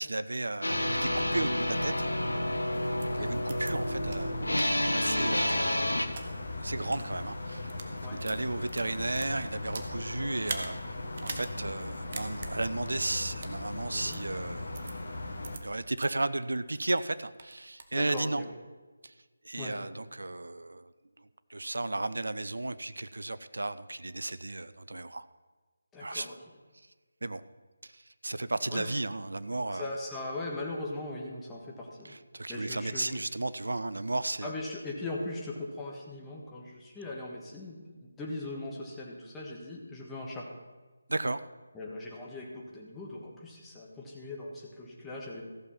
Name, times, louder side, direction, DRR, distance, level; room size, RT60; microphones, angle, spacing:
voice 1, 0.0-2.1 3.1-4.3 4.9-5.9 6.2-11.0 11.2-14.7 15.6-18.4 19.0-19.1 19.4-20.9 21.5-25.3 26.0-26.3 27.2-27.4 27.8-29.9 32.0-34.5 41.1-41.4, right 2 dB, 70° right, 13 dB, 0.5 m, -34 dB
sound 1, 0.6-6.1, left 1 dB, 80° left, 1.0 m, -30 dB
sound 2, 0.7-15.6, left 2 dB, 60° left, 1.5 m, -38 dB
sound 3, 3.0-3.1 3.5-3.7 4.1-4.2 4.6-4.7 5.2-6.2 6.8-7.0 7.6-7.9 8.2-9.9 10.4-10.7 11.1-11.5 11.8-11.9 12.1-12.5 13.3-13.6 14.1-14.2 14.7-14.9 15.4-15.6 16.0-16.1 16.5-17.0 17.4-18.0, right 4 dB, 40° right, 1.1 m, -41 dB
voice 2, 3.2-3.7 5.0-5.2 8.0-8.2 13.9-14.2 17.9-18.5 19.6-19.7 25.9-26.3 28.7-28.9 29.7-32.1 32.5-33.2 34.4-40.5 41.7-45.4, left 2 dB, 10° left, -3 dB, 1.4 m, -40 dB
14.5 x 7.1 x 5.8 m, 1.3 s
figure-of-eight pair, 155°, 0 cm